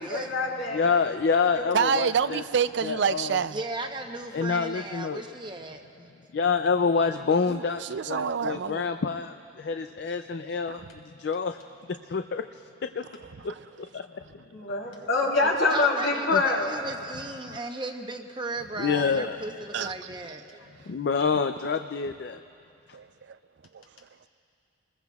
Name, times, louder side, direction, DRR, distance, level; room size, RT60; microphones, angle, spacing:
voice 1, 0.0-0.8 1.6-1.7 14.5-16.7, left 3 dB, 85° left, 3.2 m, -25 dB
voice 2, 0.7-2.4 2.8-3.4 4.3-5.3 6.3-11.6 12.0-13.1 13.9-14.4 16.3-16.4 17.5-17.6 18.8-19.4 20.9-22.4, left 5 dB, 55° left, 0.4 m, -27 dB
voice 3, 1.7-3.6 7.5-8.9 10.6-10.9 19.7-19.9 22.9-23.4 23.7-23.8, right 6 dB, 60° right, 0.4 m, -27 dB
voice 4, 3.5-6.1 15.4-20.7, right 2 dB, 25° right, 0.8 m, -36 dB
28.5 x 21.0 x 2.4 m
head